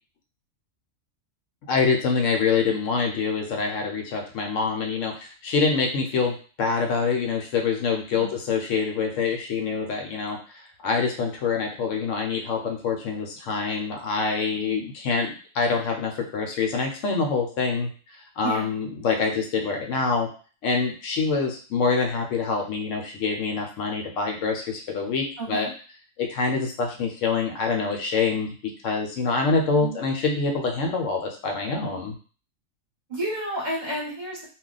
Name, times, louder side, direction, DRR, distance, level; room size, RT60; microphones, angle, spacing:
voice 1, 1.7-20.3 20.6-25.7 26.2-28.5 28.8-32.2, left 4 dB, 70° left, 2 dB, 0.9 m, -25 dB
voice 2, 14.5-14.9 18.4-18.7 25.4-25.7 29.8-30.0 33.1-34.4, right 1 dB, 40° right, -5 dB, 0.9 m, -31 dB
2.3 x 2.2 x 3.8 m, 0.38 s
omnidirectional pair, 1.4 m